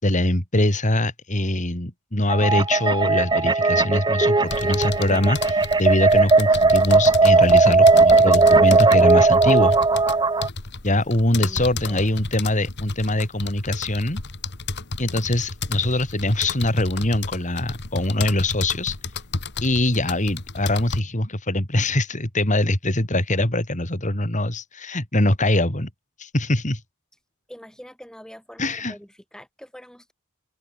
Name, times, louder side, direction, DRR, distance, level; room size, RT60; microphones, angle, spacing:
voice 1, 0.0-9.8 10.8-14.2 15.0-19.0 19.6-25.9 26.2-26.8 28.6-28.9, left 1 dB, 35° left, 4.0 m, -23 dB
sound 1, 2.3-10.5, right 3 dB, 20° right, 0.7 m, -17 dB
sound 2, 4.5-21.0, left 3 dB, 55° left, 2.1 m, -32 dB
voice 2, 11.3-12.1 27.5-30.1, equal, 5° left, 7.7 m, -44 dB
head